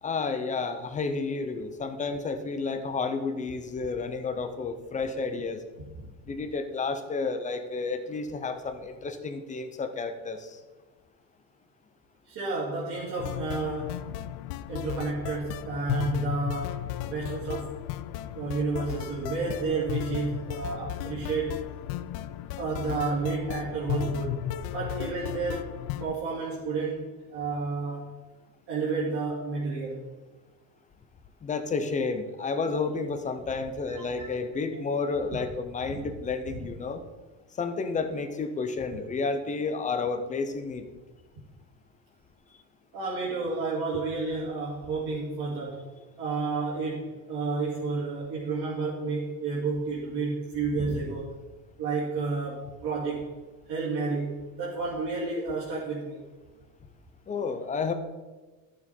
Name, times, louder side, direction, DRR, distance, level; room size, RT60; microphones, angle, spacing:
voice 1, 0.0-5.6 6.3-10.6 31.4-37.0 37.6-40.8 57.3-57.9, left 4 dB, 15° left, 8 dB, 0.4 m, -31 dB
voice 2, 12.3-14.0 14.7-17.7 18.3-21.6 22.6-24.4 24.7-25.7 26.0-28.0 28.7-30.0 33.9-34.2 34.7-34.8 35.9-36.0 36.5-36.6 42.9-45.8 46.2-51.3 51.8-53.3 53.7-56.2, right 4 dB, 50° right, -8 dB, 2.8 m, -31 dB
sound 1, 13.2-26.2, left 13 dB, 70° left, 0.6 m, -35 dB
12.5 x 7.0 x 4.2 m, 1.2 s
cardioid pair, 155°, 49 cm